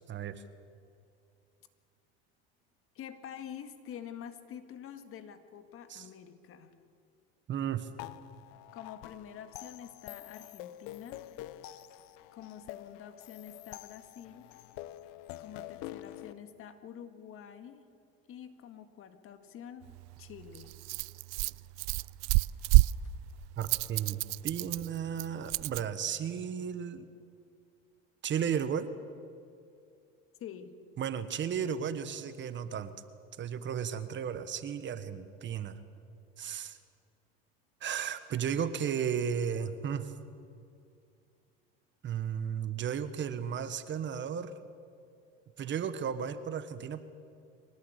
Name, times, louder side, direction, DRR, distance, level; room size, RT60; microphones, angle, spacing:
voice 1, 0.1-0.4 5.9-6.1 7.5-7.9 23.6-27.1 28.2-28.9 31.0-32.9 33.4-35.8 36.4-36.8 37.8-40.1 42.0-44.6 45.6-47.0, right 8 dB, 40° right, 12 dB, 1.5 m, -34 dB
voice 2, 3.0-6.7 8.7-11.2 12.3-14.5 15.4-17.9 18.3-19.9 20.2-20.7 30.4-30.8, left 9 dB, 45° left, 9 dB, 2.0 m, -47 dB
sound 1, 8.0-16.3, left 15 dB, 70° left, 1.0 m, -46 dB
Rattle, 19.8-25.8, right 21 dB, 65° right, 0.5 m, -30 dB
24.0 x 18.5 x 8.4 m, 2.4 s
supercardioid pair, 105°, 30 cm